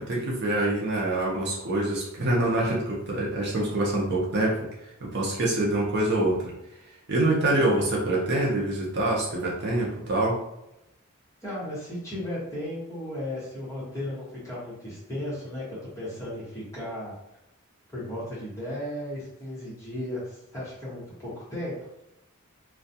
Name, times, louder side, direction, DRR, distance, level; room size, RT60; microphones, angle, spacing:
voice 1, 0.0-4.5 5.0-6.5 7.1-10.4, right 1 dB, 50° right, -4 dB, 0.6 m, -25 dB
voice 2, 11.4-17.1 17.9-21.7, left 1 dB, 15° left, -9 dB, 1.0 m, -35 dB
2.3 x 2.2 x 2.7 m, 0.88 s
head